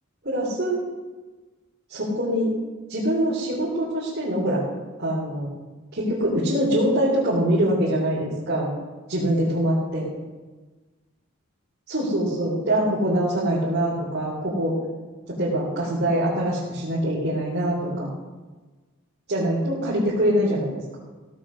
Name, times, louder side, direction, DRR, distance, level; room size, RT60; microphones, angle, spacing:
voice 1, 0.2-0.8 1.9-2.5 2.9-4.6 5.0-5.5 5.9-8.7 9.1-10.1 11.9-14.8 15.3-18.1 19.3-20.7, right 1 dB, 50° right, -7 dB, 3.6 m, -24 dB
17.0 x 7.8 x 6.3 m, 1.3 s
head